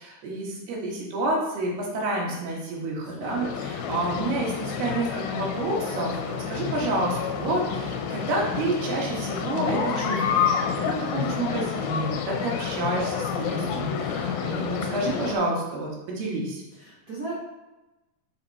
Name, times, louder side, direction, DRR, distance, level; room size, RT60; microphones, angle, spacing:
voice 1, 0.0-16.6, right 2 dB, 80° right, -2 dB, 3.6 m, -29 dB
voice 2, 3.1-3.5 16.8-17.3, right 3 dB, 50° right, -8 dB, 1.2 m, -37 dB
sound 1, 3.2-15.3, left 7 dB, 80° left, 2.5 m, -29 dB
6.9 x 6.0 x 4.2 m, 1.0 s
omnidirectional pair, 4.4 m